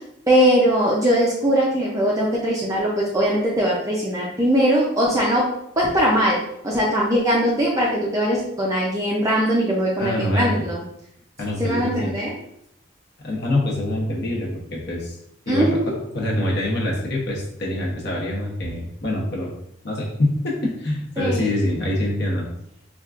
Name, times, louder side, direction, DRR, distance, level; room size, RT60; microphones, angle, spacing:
voice 1, 0.3-5.4 5.8-10.8 11.6-12.3 15.5-16.0 21.2-21.4, equal, 15° right, -4 dB, 0.4 m, -20 dB
voice 2, 10.0-10.6 11.4-12.1 13.2-15.2 15.5-15.8 16.1-19.5 19.8-22.5, left 1 dB, 55° left, -2 dB, 0.8 m, -25 dB
4.4 x 2.4 x 2.4 m, 0.74 s
head